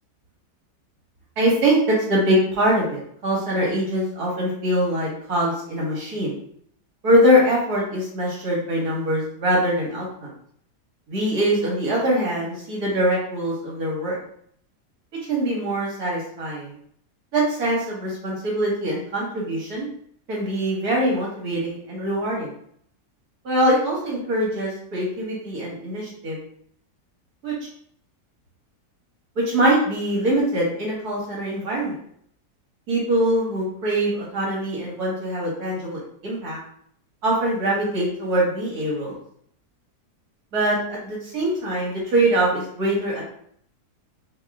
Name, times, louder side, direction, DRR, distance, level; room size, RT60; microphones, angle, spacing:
voice 1, 1.4-6.3 7.0-10.3 11.1-14.2 15.3-16.7 17.3-19.9 20.3-22.5 23.4-26.4 27.4-27.5 29.5-32.0 32.9-36.6 37.2-39.2 40.5-43.2, right 1 dB, 70° right, -4 dB, 2.1 m, -23 dB
4.8 x 2.7 x 3.7 m, 0.64 s
omnidirectional pair, 1.7 m